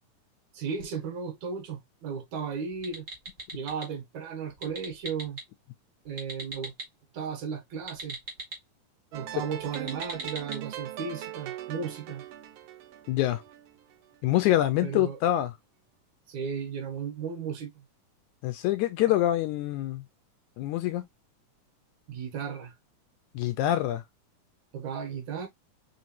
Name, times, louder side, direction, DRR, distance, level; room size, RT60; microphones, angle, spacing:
voice 1, 0.5-3.1 3.5-5.4 6.1-6.7 7.1-8.2 9.1-12.2 14.8-15.2 16.3-17.8 22.1-22.8 24.7-25.5, right 6 dB, 70° right, 2.3 m, -35 dB
sound 1, 2.7-3.9 4.5-5.4 6.0-6.9 7.8-8.6 9.6-10.6, right 3 dB, 50° right, 0.9 m, -40 dB
sound 2, 9.1-14.2, right 12 dB, 85° right, 1.3 m, -41 dB
voice 2, 13.1-13.4 14.2-15.5 18.4-20.0 20.6-21.0 23.4-24.0, left 14 dB, 80° left, 1.8 m, -25 dB
5.1 x 3.0 x 2.8 m
omnidirectional pair, 3.7 m